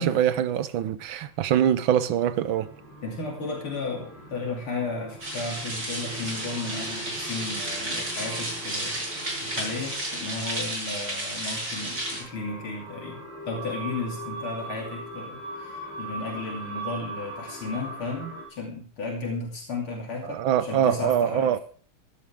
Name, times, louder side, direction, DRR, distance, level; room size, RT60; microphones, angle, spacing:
voice 1, 0.0-2.7 20.2-21.6, right 10 dB, 75° right, 1.5 m, -24 dB
sound 1, 1.7-10.7 11.4-18.5, right 2 dB, 55° left, 7.2 m, -41 dB
voice 2, 3.0-21.6, left 3 dB, 75° left, 3.6 m, -34 dB
sound 2, 5.2-12.2, right 1 dB, 35° right, 7.2 m, -32 dB
15.5 x 12.5 x 3.6 m
omnidirectional pair, 2.3 m